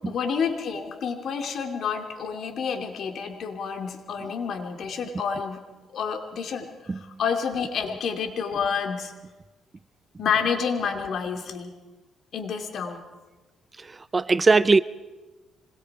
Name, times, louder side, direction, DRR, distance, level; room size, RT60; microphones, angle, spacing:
voice 1, 0.0-5.6 5.9-9.1 10.2-11.7 12.3-13.0, left 6 dB, 65° left, 2.8 m, -29 dB
voice 2, 13.8-14.8, right 3 dB, 25° right, 0.5 m, -20 dB
26.0 x 21.0 x 4.9 m
cardioid pair, 90°, 0 cm